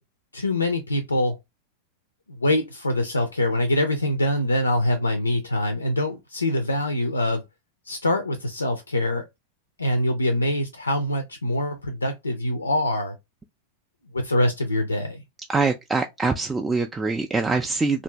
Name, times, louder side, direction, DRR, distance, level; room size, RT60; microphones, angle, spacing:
voice 1, 0.3-1.4 2.4-7.4 7.9-9.2 9.8-13.1 14.1-15.2, left 1 dB, 80° left, 0.4 m, -24 dB
voice 2, 15.5-18.0, right 3 dB, 10° right, 0.3 m, -24 dB
2.7 x 2.5 x 3.1 m
figure-of-eight pair, 90°, 0 cm